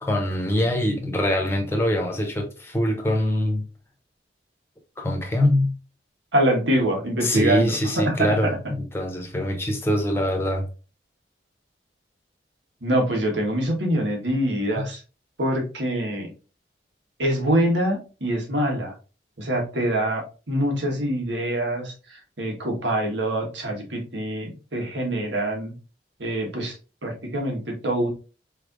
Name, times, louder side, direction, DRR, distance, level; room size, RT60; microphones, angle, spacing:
voice 1, 0.0-3.7 5.0-5.7 7.2-10.7 14.8-14.9, left 1 dB, 15° left, 0.9 m, -24 dB
voice 2, 6.3-8.5 12.8-15.0 15.4-16.3 17.2-18.9 19.4-25.7 26.2-26.8 27.0-28.1, right 1 dB, 90° right, 1.4 m, -25 dB
4.2 x 3.3 x 2.5 m
head